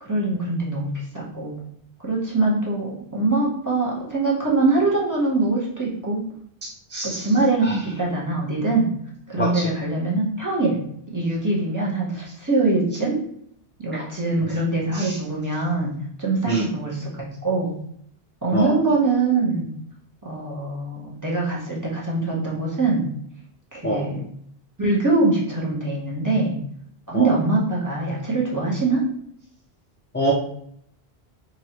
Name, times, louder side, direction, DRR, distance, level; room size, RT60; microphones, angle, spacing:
voice 1, 0.0-1.6 2.0-6.2 7.0-8.9 9.3-10.8 11.1-13.2 13.8-15.9 16.2-17.8 18.4-19.7 20.2-23.1 23.7-24.2 24.8-26.6 27.1-29.0, right 3 dB, 20° right, -5 dB, 1.1 m, -23 dB
voice 2, 6.6-7.3 7.6-7.7 9.4-9.7 13.9-14.1 14.4-14.6 14.9-15.2 16.5-16.7 18.5-18.7 23.8-24.1 27.1-27.3 30.1-30.3, right 1 dB, 15° left, -4 dB, 0.4 m, -26 dB
3.1 x 2.7 x 4.3 m, 0.67 s
omnidirectional pair, 1.1 m